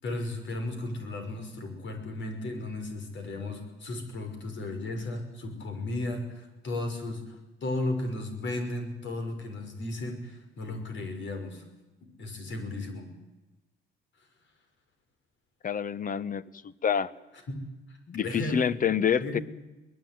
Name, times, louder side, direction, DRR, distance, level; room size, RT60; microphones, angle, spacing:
voice 1, 0.0-11.6 12.2-13.1 17.5-17.6 17.9-18.7 19.2-19.4, left 2 dB, 70° left, 6 dB, 6.2 m, -35 dB
voice 2, 15.6-16.4 16.8-17.1 18.1-19.4, left 8 dB, 45° left, 18 dB, 1.0 m, -27 dB
23.5 x 19.5 x 9.5 m, 1.1 s
cardioid pair, 90°, 20 cm